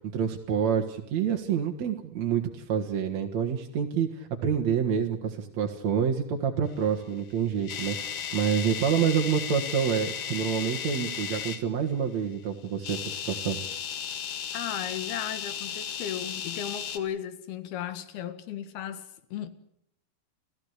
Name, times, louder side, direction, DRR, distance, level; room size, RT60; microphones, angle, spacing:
voice 1, 0.1-13.6, right 7 dB, 55° right, 2.6 m, -27 dB
sound 1, 7.2-11.6 12.7-17.0, left 8 dB, 50° left, 1.9 m, -35 dB
voice 2, 14.5-19.5, left 10 dB, 80° left, 3.5 m, -35 dB
29.5 x 15.5 x 8.2 m
omnidirectional pair, 4.5 m